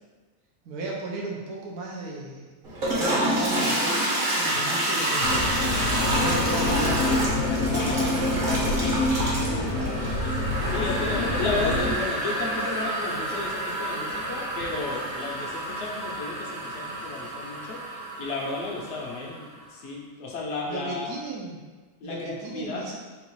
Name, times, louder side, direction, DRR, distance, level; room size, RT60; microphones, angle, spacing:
voice 1, 0.6-2.5 2.9-7.4 7.6-10.0 10.6-10.7 20.7-21.6 22.0-23.0, right 2 dB, 80° right, -2 dB, 1.3 m, -35 dB
Toilet flush, 2.6-19.4, right 1 dB, 40° right, 0.9 m, -29 dB
sound 1, 5.2-11.9, left 2 dB, 70° left, 1.2 m, -26 dB
voice 2, 7.6-8.1 10.7-17.8 18.2-21.1 22.0-22.9, left 3 dB, 55° left, -2 dB, 1.0 m, -33 dB
3.8 x 2.5 x 4.6 m, 1.4 s
omnidirectional pair, 1.6 m